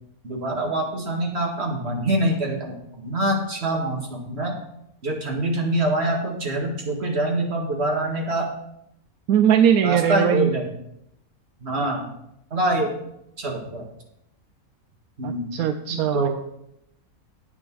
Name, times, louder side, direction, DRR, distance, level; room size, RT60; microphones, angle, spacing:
voice 1, 0.2-4.5 5.0-8.5 9.8-10.7 11.6-12.1 12.5-12.9 13.4-13.8 15.2-15.5 15.9-16.3, right 1 dB, 45° right, 1 dB, 2.2 m, -25 dB
voice 2, 9.3-10.5 15.2-16.3, right 9 dB, 80° right, 10 dB, 1.0 m, -20 dB
10.0 x 8.6 x 4.6 m, 0.78 s
omnidirectional pair, 1.5 m